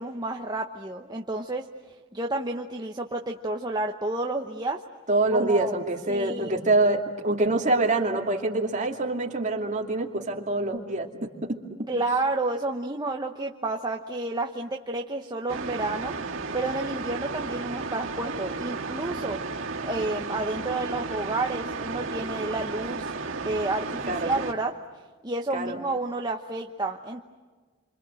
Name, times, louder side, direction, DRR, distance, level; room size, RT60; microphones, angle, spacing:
voice 1, 0.0-1.6 2.1-4.8 5.3-5.7 6.1-6.6 11.9-16.1 16.5-19.4 19.8-23.1 23.4-24.8 25.2-27.2, right 2 dB, 20° right, 2 dB, 1.0 m, -30 dB
voice 2, 5.1-11.3 24.1-24.3 25.5-25.8, right 2 dB, 40° right, 2 dB, 2.6 m, -25 dB
sound 1, 15.5-24.5, right 4 dB, 75° right, 2.5 m, -33 dB
29.0 x 26.0 x 7.8 m, 1.4 s
head